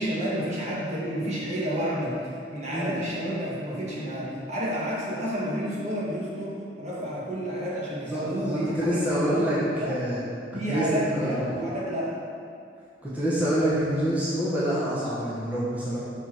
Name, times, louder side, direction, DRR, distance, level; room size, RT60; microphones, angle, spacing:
voice 1, 0.0-10.0 10.5-12.2, equal, 40° right, -6 dB, 1.6 m, -30 dB
voice 2, 8.1-10.2 10.7-11.4 13.0-16.0, equal, 10° right, -10 dB, 1.2 m, -26 dB
6.4 x 5.1 x 4.5 m, 2.4 s
head